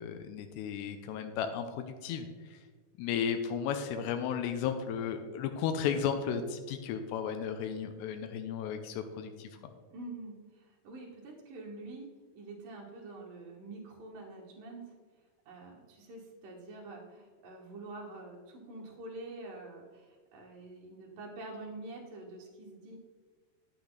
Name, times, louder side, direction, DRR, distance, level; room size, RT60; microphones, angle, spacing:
voice 1, 0.0-2.6 3.0-9.5, left 7 dB, 90° left, 7 dB, 2.8 m, -34 dB
voice 2, 9.9-12.1 12.4-14.8 15.5-23.0, right 2 dB, 60° right, -2 dB, 2.7 m, -46 dB
10.0 x 8.9 x 3.9 m, 1.5 s
omnidirectional pair, 4.9 m